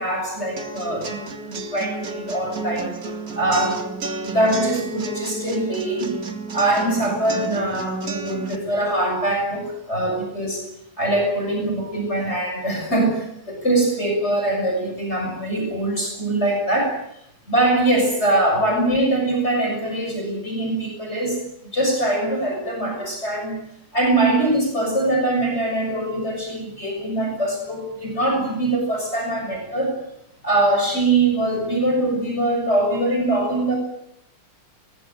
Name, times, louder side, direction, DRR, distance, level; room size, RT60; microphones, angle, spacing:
voice 1, 0.0-2.9 3.4-3.9 4.2-6.1 6.5-10.7 11.0-17.0 17.5-21.4 21.7-23.6 23.9-30.0 30.4-33.7, right 2 dB, 30° left, 1 dB, 6.8 m, -22 dB
sound 1, 0.6-8.6, right 3 dB, 45° right, 2.6 m, -32 dB
21.5 x 20.0 x 9.0 m, 0.78 s
omnidirectional pair, 2.3 m